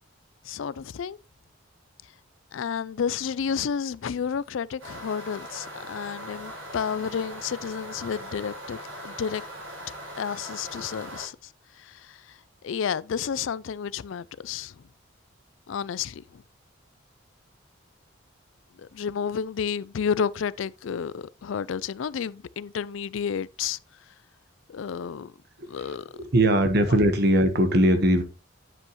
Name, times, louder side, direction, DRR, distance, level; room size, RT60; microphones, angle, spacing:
voice 1, 0.4-1.2 2.5-9.4 10.2-11.5 11.8-14.9 15.7-16.4 18.8-23.8 24.7-25.3 25.7-26.1 26.9-27.0, left 7 dB, 70° left, 0.4 m, -31 dB
sound 1, 4.8-11.3, equal, 80° right, 6.4 m, -40 dB
voice 2, 26.2-28.2, right 1 dB, 50° right, 1.2 m, -20 dB
10.0 x 7.6 x 3.0 m
head